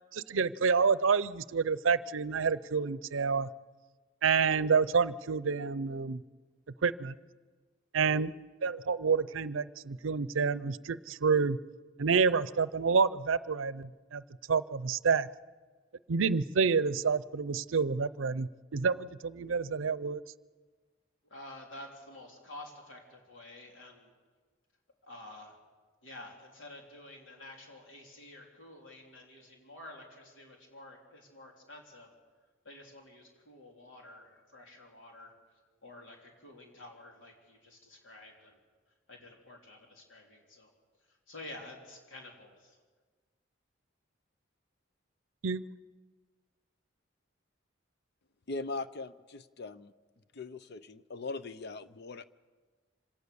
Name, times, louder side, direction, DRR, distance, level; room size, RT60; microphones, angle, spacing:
voice 1, 0.1-3.5 4.2-6.2 6.8-7.1 7.9-8.3 8.6-11.6 12.0-14.2 14.5-15.3 16.1-20.2 45.4-45.6, right 5 dB, 85° right, 17 dB, 0.6 m, -28 dB
voice 2, 21.3-24.1 25.0-25.6 26.0-32.1 32.6-35.3 35.8-38.6 39.1-40.7 41.3-42.8, left 1 dB, 75° left, 1 dB, 3.6 m, -50 dB
voice 3, 48.5-49.9 50.3-52.2, left 3 dB, 60° left, 13 dB, 0.7 m, -40 dB
25.5 x 18.0 x 7.0 m, 1.4 s
head